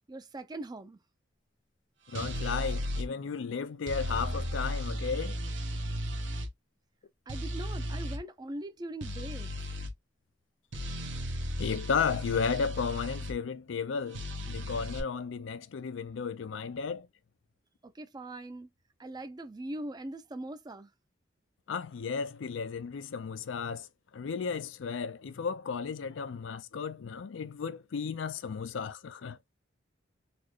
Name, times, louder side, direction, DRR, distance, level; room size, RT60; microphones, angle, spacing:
voice 1, 0.1-1.0 7.3-9.5 17.8-18.7 19.0-20.9, right 1 dB, 20° right, 0.4 m, -41 dB
voice 2, 2.1-5.4 11.6-17.1 21.7-23.9 24.1-29.4, left 5 dB, 80° left, 0.4 m, -34 dB
sound 1, 2.1-3.1 3.9-6.5 7.3-8.2 9.0-9.9 10.7-13.4 14.1-15.0, equal, 75° right, 1.0 m, -35 dB
4.2 x 2.1 x 3.0 m
head